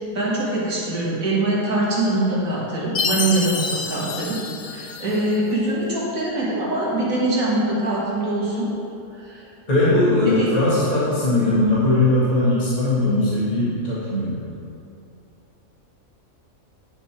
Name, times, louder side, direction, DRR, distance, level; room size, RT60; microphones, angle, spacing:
voice 1, 0.1-8.7 9.2-9.5 10.3-10.6, right 2 dB, 70° right, -6 dB, 2.3 m, -23 dB
Chime, 3.0-5.4, left 5 dB, 80° left, 1.3 m, -28 dB
voice 2, 9.7-14.4, left 2 dB, 30° left, -9 dB, 1.9 m, -19 dB
10.0 x 5.4 x 4.4 m, 2.7 s
omnidirectional pair, 1.5 m